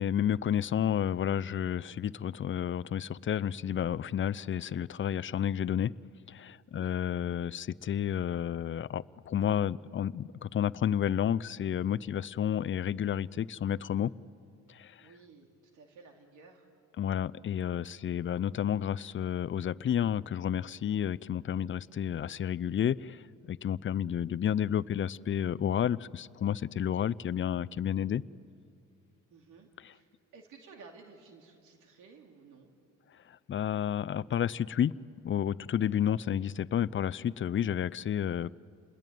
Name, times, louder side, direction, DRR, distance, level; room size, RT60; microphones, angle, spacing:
voice 1, 0.0-5.9 6.3-14.1 14.7-15.0 17.0-23.2 23.5-28.2 33.3-34.9 35.2-38.5, left 9 dB, 40° left, 20 dB, 0.6 m, -31 dB
voice 2, 15.0-16.7 29.3-32.7, right 4 dB, 85° right, 2 dB, 2.9 m, -55 dB
29.0 x 21.0 x 9.3 m, 2.4 s
cardioid pair, 90°, 30 cm